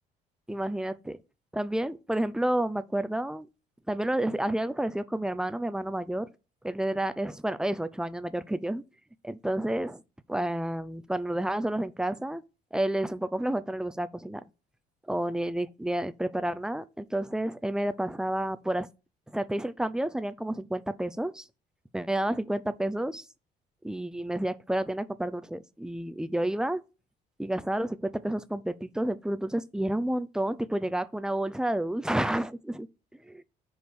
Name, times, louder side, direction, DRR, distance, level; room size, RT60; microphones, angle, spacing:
voice 1, 0.5-1.2 1.5-3.5 3.9-6.3 6.6-8.8 9.2-10.0 10.3-12.4 12.7-14.4 15.1-18.9 19.3-21.5 21.9-23.3 23.8-26.8 27.4-32.9, right 1 dB, 5° right, 0.5 m, -30 dB
5.3 x 4.7 x 6.1 m
cardioid pair, 110°, 17 cm